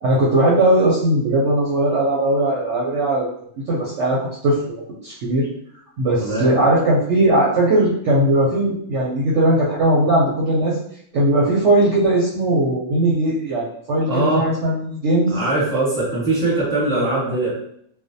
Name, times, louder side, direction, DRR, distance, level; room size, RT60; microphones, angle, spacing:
voice 1, 0.0-3.3 3.7-4.6 5.0-5.5 6.0-10.8 11.1-15.4 17.0-17.1, right 1 dB, 65° right, -6 dB, 0.8 m, -18 dB
voice 2, 14.1-14.4 15.3-17.5, right 2 dB, 5° left, -8 dB, 0.8 m, -21 dB
2.4 x 2.1 x 2.6 m, 0.67 s
omnidirectional pair, 1.6 m